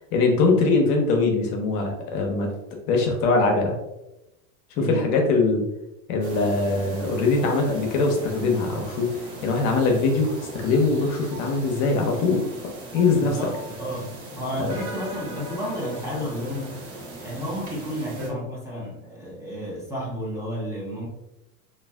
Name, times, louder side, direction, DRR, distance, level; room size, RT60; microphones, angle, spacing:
voice 1, 0.1-2.5 2.9-3.7 4.8-5.7 6.1-9.1 9.4-12.4 12.9-13.4 14.6-14.8, left 3 dB, 55° left, 2 dB, 0.8 m, -22 dB
voice 2, 4.8-5.1 13.1-16.8 17.2-21.1, equal, 5° right, -5 dB, 0.7 m, -32 dB
sound 1, 6.2-18.3, right 2 dB, 50° right, 1.0 m, -39 dB
3.2 x 2.5 x 2.2 m, 0.92 s
supercardioid pair, 120°, 41 cm